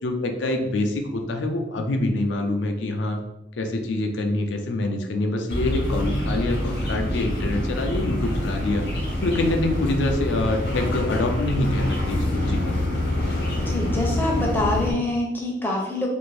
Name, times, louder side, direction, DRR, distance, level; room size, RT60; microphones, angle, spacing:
voice 1, 0.0-3.2 3.6-8.8 9.2-12.6, left 2 dB, 85° left, 4 dB, 0.4 m, -25 dB
sound 1, 5.5-14.9, left 1 dB, 60° left, 0.8 m, -26 dB
voice 2, 13.6-16.1, left 2 dB, 10° left, -2 dB, 0.4 m, -25 dB
2.6 x 2.5 x 3.2 m, 0.92 s
head